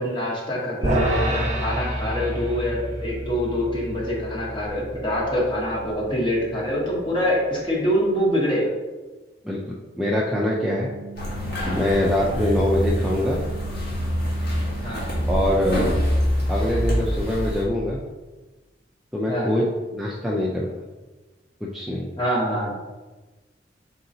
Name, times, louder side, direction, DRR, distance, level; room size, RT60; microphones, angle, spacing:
voice 1, 0.0-8.7 12.3-12.5 14.8-15.0 19.3-19.5 22.2-22.7, equal, 25° left, -4 dB, 1.0 m, -25 dB
sound 1, 0.8-7.2, right 1 dB, 40° right, 0.7 m, -29 dB
voice 2, 9.4-10.9 11.7-13.4 15.3-15.9 16.5-18.0 19.1-19.6 19.9-20.8 21.7-22.1, left 1 dB, ahead, -5 dB, 0.3 m, -24 dB
sound 2, 10.4-15.9, right 6 dB, 85° left, 1.4 m, -40 dB
sound 3, 11.2-17.6, equal, 55° left, 1.4 m, -25 dB
4.1 x 3.8 x 2.7 m, 1.2 s
head